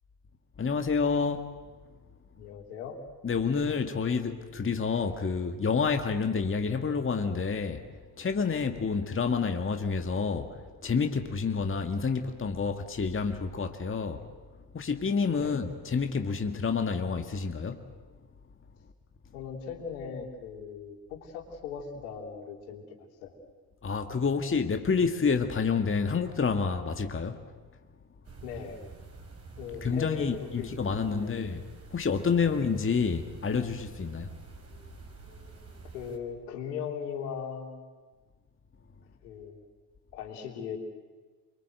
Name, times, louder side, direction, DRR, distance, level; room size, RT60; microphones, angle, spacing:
voice 1, 0.6-1.5 3.2-7.8 8.2-10.6 10.8-14.2 14.7-17.8 23.8-27.4 29.8-31.6 31.9-34.3, left 5 dB, 25° left, 1.9 m, -28 dB
voice 2, 2.4-3.0 15.4-15.6 19.3-23.4 28.4-28.9 29.6-31.5 32.4-32.6 35.9-37.8 39.2-39.6 40.1-40.8, left 7 dB, 70° left, 3.5 m, -39 dB
sound 1, 28.2-36.2, right 5 dB, 30° right, 5.1 m, -48 dB
29.5 x 23.0 x 8.0 m
figure-of-eight pair, 45°, 48 cm